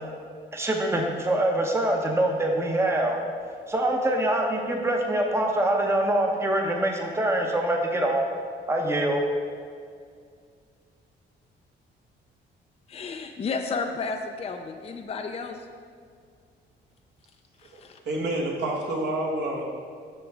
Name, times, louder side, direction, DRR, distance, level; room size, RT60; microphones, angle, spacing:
voice 1, 0.5-3.2 3.7-8.3 8.7-9.2, right 1 dB, 15° right, 1 dB, 0.8 m, -24 dB
voice 2, 12.9-15.7 17.6-18.0, left 4 dB, 30° left, 5 dB, 0.4 m, -32 dB
voice 3, 17.6-19.7, right 1 dB, 60° right, -2 dB, 1.6 m, -29 dB
7.7 x 6.0 x 3.4 m, 2.2 s
cardioid pair, 90°, 20 cm